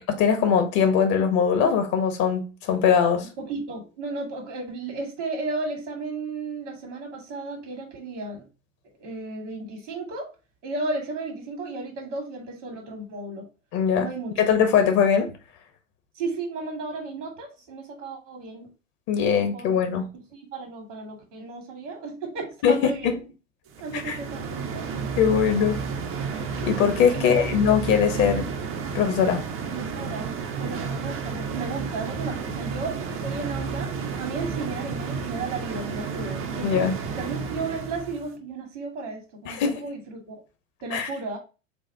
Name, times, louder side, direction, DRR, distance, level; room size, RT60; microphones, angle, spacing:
voice 1, 0.2-3.3 13.7-14.1 14.4-15.3 19.1-20.1 22.6-23.2 23.9-24.2 25.2-25.8 26.6-28.4 28.9-29.4 36.6-36.9 39.4-39.8 40.9-41.1, left 7 dB, 50° left, 1.3 m, -21 dB
voice 2, 3.4-8.5 9.0-10.3 10.6-13.5 14.0-14.4 16.2-18.7 19.3-19.8 20.1-23.2 23.8-24.9 27.1-27.4 28.2-28.5 29.7-33.9 34.2-40.4 40.8-41.4, right 3 dB, 70° right, 2.2 m, -34 dB
sound 1, 23.7-38.3, right 5 dB, 35° right, 0.8 m, -31 dB
6.9 x 2.5 x 2.8 m
hypercardioid pair, 90°, 38 cm